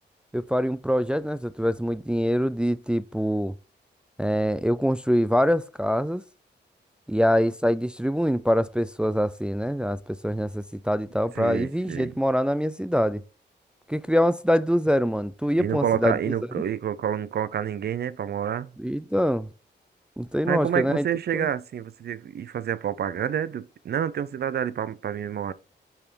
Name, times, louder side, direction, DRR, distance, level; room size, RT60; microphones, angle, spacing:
voice 1, 0.3-3.5 4.2-6.2 7.1-13.2 13.9-16.2 18.8-19.5 20.2-21.1 21.3-21.5, equal, 5° right, 0.3 m, -24 dB
voice 2, 11.4-12.1 15.6-18.7 20.5-25.5, right 9 dB, 60° right, 0.5 m, -28 dB
8.6 x 3.5 x 4.4 m
cardioid pair, 90°, 19 cm